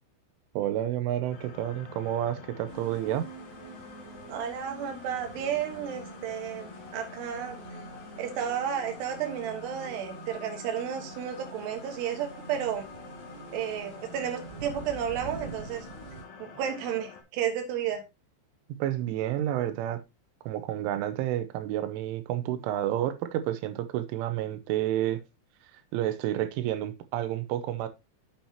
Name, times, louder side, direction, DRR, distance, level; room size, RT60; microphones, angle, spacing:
voice 1, 0.6-3.3 18.8-20.0 20.5-25.2 25.9-27.9, right 12 dB, 85° right, 3.3 m, -30 dB
sound 1, 1.3-17.2, left 5 dB, 65° left, 1.8 m, -47 dB
sound 2, 2.7-16.2, right 3 dB, 35° right, 3.2 m, -46 dB
voice 2, 4.3-7.6 8.2-12.9 13.5-15.9 16.4-18.0, right 9 dB, 65° right, 3.2 m, -32 dB
8.6 x 7.4 x 2.9 m
omnidirectional pair, 5.6 m